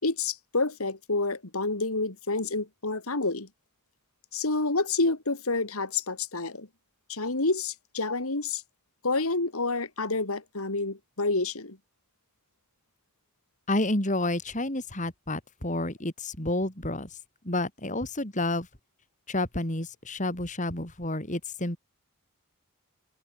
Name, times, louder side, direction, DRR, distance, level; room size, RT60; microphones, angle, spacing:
voice 1, 0.0-3.5 4.3-6.7 7.1-8.6 9.0-11.8, left 3 dB, 80° left, 2.7 m, -28 dB
voice 2, 13.7-17.2 17.4-18.7 19.3-21.8, left 1 dB, 35° left, 4.1 m, -30 dB
head